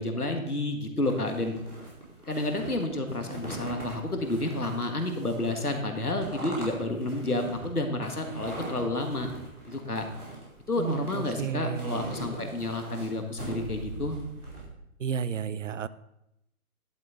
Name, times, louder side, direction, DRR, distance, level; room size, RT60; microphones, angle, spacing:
voice 1, 0.0-1.5 2.3-9.3 9.7-10.1 10.7-14.1, left 2 dB, 90° left, 5 dB, 1.8 m, -30 dB
sound 1, 1.0-14.7, right 2 dB, 85° right, 4.2 m, -41 dB
voice 2, 10.8-12.2 15.0-15.9, right 7 dB, 60° right, 17 dB, 0.5 m, -32 dB
11.5 x 7.8 x 3.9 m, 0.83 s
figure-of-eight pair, 135°, 44 cm